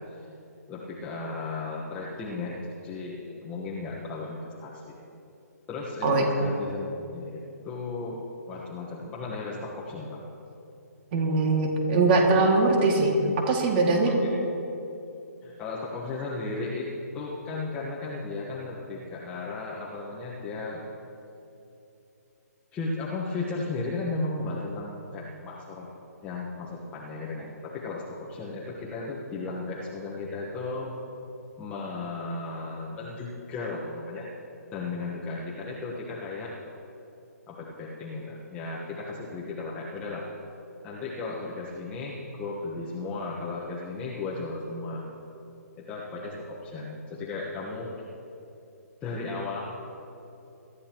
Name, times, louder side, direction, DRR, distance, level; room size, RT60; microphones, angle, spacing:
voice 1, 0.7-5.0 5.7-10.2 14.0-14.3 15.4-16.9 17.1-20.9 22.7-25.9 26.2-30.9 31.6-34.3 34.7-36.6 37.5-40.3 40.8-45.0 45.8-47.9 49.0-49.6, left 3 dB, 15° left, -6 dB, 1.3 m, -35 dB
voice 2, 11.1-13.1 13.5-14.1, right 3 dB, 35° right, 1 dB, 2.3 m, -21 dB
23.0 x 12.5 x 3.1 m, 2.8 s
hypercardioid pair, 150°, 9 cm